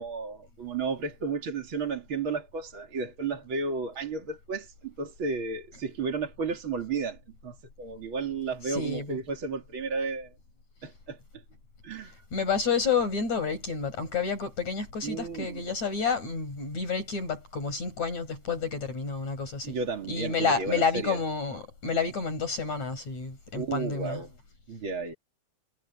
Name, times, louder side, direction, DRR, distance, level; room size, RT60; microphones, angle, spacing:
voice 1, 0.0-10.3 10.8-11.4 11.8-12.1 15.0-15.6 19.6-21.2 23.5-24.3 24.7-25.1, right 4 dB, 40° right, 3.1 m, -33 dB
voice 2, 8.6-9.2 12.0-19.8 20.1-24.3, left 5 dB, 55° left, 7.0 m, -30 dB
omnidirectional pair, 3.7 m